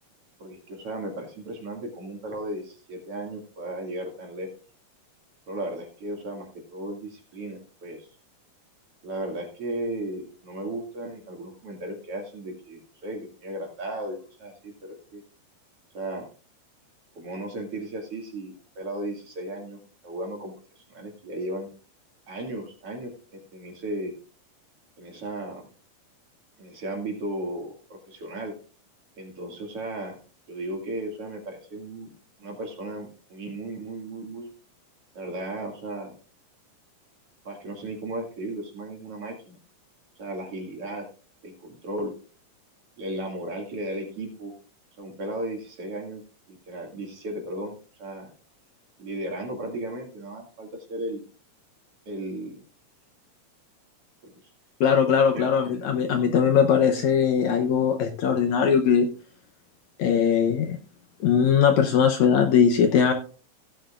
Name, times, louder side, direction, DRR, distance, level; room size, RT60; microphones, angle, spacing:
voice 1, 0.4-4.5 5.5-8.1 9.0-15.2 15.9-16.3 17.1-21.7 22.3-23.1 23.5-24.1 25.0-25.6 26.6-28.5 29.2-30.2 30.5-32.1 32.4-34.5 35.1-36.1 37.4-39.6 40.2-41.1 41.4-42.1 43.0-44.5 45.0-46.2 46.5-48.3 49.0-51.2 52.1-52.6 54.2-54.3 55.1-55.5, right 1 dB, 45° right, 1 dB, 2.8 m, -35 dB
voice 2, 54.8-59.1 60.0-60.8 61.2-63.1, left 7 dB, 70° left, 4 dB, 1.9 m, -20 dB
16.5 x 9.2 x 2.4 m, 0.37 s
omnidirectional pair, 3.9 m